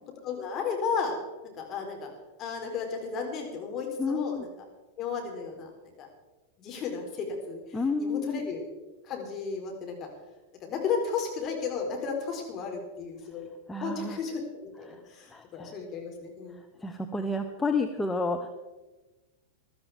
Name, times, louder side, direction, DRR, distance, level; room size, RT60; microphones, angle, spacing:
voice 1, 0.2-1.2 1.4-2.1 2.4-4.5 5.0-6.1 6.6-8.7 9.0-10.1 10.6-13.5 13.8-16.6, left 5 dB, 35° left, 2 dB, 4.5 m, -34 dB
voice 2, 4.0-4.4 7.7-8.4 13.7-14.2 14.9-15.0 15.3-15.7 16.8-18.5, left 3 dB, 10° left, 4 dB, 1.0 m, -30 dB
21.0 x 13.5 x 3.6 m, 1.2 s
figure-of-eight pair, 95°, 0 cm